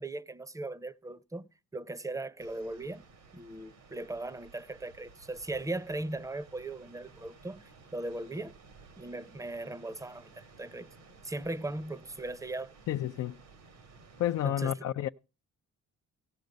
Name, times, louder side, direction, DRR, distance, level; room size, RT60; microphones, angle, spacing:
voice 1, 0.0-3.0 3.3-8.6 9.0-10.9 11.2-12.7 14.4-14.7, right 2 dB, 10° right, 0.7 m, -38 dB
sound 1, 2.4-14.5, right 4 dB, 90° right, 2.4 m, -56 dB
voice 2, 12.9-13.4 14.2-15.1, left 12 dB, 60° left, 0.5 m, -30 dB
17.0 x 6.4 x 5.2 m
cardioid pair, 90°, 30 cm